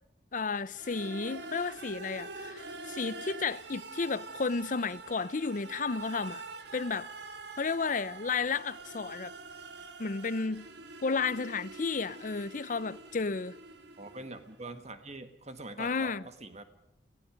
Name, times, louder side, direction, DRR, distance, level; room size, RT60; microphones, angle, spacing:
voice 1, 0.3-6.4 6.7-7.1 7.6-9.3 10.0-10.7 11.0-13.6 15.8-16.2, left 4 dB, 45° left, 0.6 m, -32 dB
sound 1, 0.7-14.6, right 3 dB, 70° right, 1.7 m, -45 dB
voice 2, 14.0-16.6, right 2 dB, 40° right, 1.8 m, -44 dB
30.0 x 16.5 x 5.2 m
head